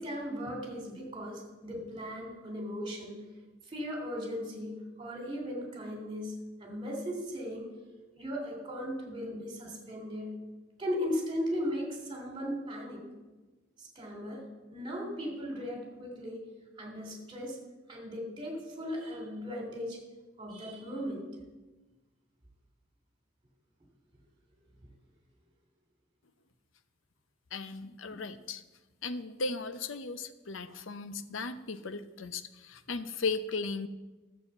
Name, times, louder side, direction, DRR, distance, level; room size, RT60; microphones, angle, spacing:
voice 1, 0.0-3.2 3.7-6.3 6.6-7.7 8.2-10.3 10.8-13.0 13.8-14.4 14.7-16.4 16.8-17.6 17.9-20.0 20.4-21.2, equal, 25° right, 1 dB, 2.9 m, -37 dB
voice 2, 27.5-28.6 29.0-33.9, left 4 dB, 75° left, 11 dB, 0.7 m, -36 dB
12.5 x 6.5 x 7.9 m, 1.2 s
head